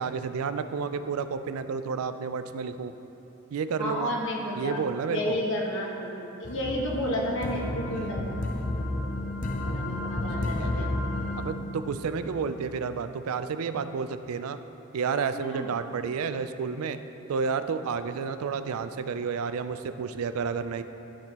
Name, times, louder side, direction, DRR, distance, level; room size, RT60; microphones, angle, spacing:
voice 1, 0.0-2.9 3.5-4.1 4.6-5.4 7.9-8.1 10.4-11.0 11.4-14.6 14.9-17.0 17.3-20.8, right 5 dB, 90° right, 11 dB, 0.4 m, -31 dB
voice 2, 3.8-6.1 6.4-8.6 9.6-11.0 15.3-15.7, equal, 65° left, -2 dB, 1.3 m, -31 dB
sound 1, 6.4-12.8, left 1 dB, 35° left, 0.5 m, -32 dB
12.5 x 6.0 x 2.9 m, 2.9 s
head